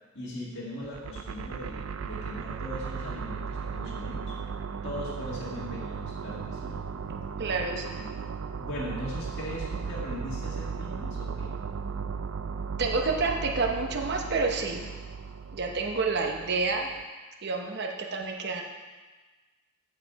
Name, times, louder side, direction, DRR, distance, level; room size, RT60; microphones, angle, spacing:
voice 1, 0.1-4.3 4.8-6.8 8.6-11.5, left 1 dB, 60° left, -6 dB, 2.0 m, -39 dB
sound 1, 0.8-17.0, right 5 dB, 80° right, 0.4 m, -36 dB
voice 2, 7.4-8.1 12.8-14.9 15.5-16.9 17.4-18.6, right 4 dB, 55° right, 2 dB, 0.9 m, -29 dB
13.5 x 5.2 x 4.6 m, 1.3 s
head